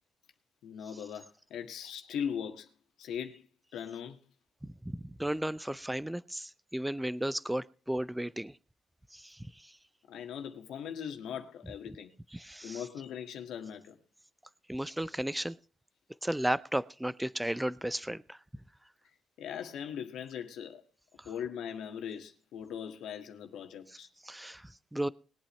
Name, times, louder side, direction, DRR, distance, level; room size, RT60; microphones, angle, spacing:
voice 1, 0.6-2.7 3.0-3.5 3.7-4.2 10.1-12.1 12.4-14.0 19.4-20.8 21.3-24.1, left 8 dB, 80° left, 1.8 m, -40 dB
voice 2, 4.6-8.6 9.1-9.7 12.3-12.8 14.7-15.6 16.2-18.4 21.2-21.3 24.2-25.1, right 1 dB, 5° right, 0.5 m, -34 dB
21.0 x 8.6 x 3.2 m
cardioid pair, 90°, 0 cm